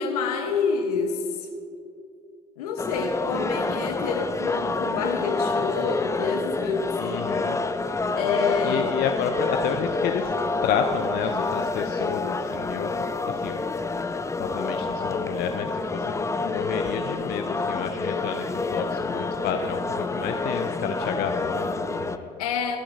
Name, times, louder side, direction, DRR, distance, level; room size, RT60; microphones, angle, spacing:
voice 1, 0.0-1.5 2.6-7.5 8.1-8.8 22.4-22.8, left 5 dB, 80° left, 4 dB, 1.2 m, -27 dB
sound 1, 2.8-22.2, left 3 dB, 15° left, 0.6 m, -28 dB
voice 2, 7.0-7.6 8.6-10.3 10.6-12.9 13.3-13.6 14.0-22.3, left 6 dB, 55° left, 5 dB, 0.7 m, -30 dB
23.0 x 8.6 x 2.8 m, 2.6 s
hypercardioid pair, 55°, 19 cm